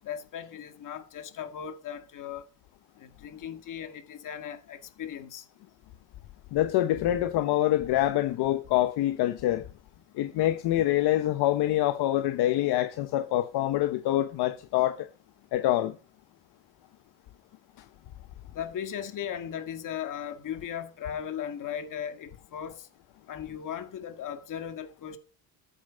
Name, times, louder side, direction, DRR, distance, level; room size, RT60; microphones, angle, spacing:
voice 1, 0.0-2.4 3.0-5.5 18.5-22.9 23.3-25.2, left 9 dB, 45° left, 1.9 m, -37 dB
voice 2, 6.5-9.6 10.1-15.1 15.5-16.0 17.8-17.9, left 14 dB, 60° left, 1.0 m, -25 dB
13.0 x 8.7 x 5.1 m
cardioid pair, 135°, 43 cm